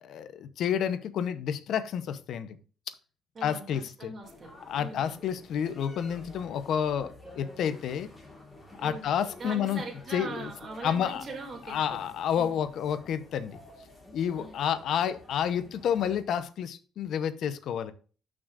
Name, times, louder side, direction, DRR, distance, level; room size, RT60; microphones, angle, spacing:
voice 1, 0.0-2.5 3.4-4.1 4.7-8.1 8.8-9.8 10.1-10.5 10.8-11.2 11.7-13.6 14.1-17.9, left 8 dB, 60° left, 0.8 m, -30 dB
voice 2, 3.3-4.5 4.8-5.0 8.8-9.1 9.4-12.0 12.3-12.6 14.4-14.5, right 3 dB, 30° right, 2.4 m, -41 dB
sound 1, 4.2-16.2, left 1 dB, 5° left, 3.3 m, -51 dB
13.0 x 6.1 x 2.5 m
cardioid pair, 170°, 0 cm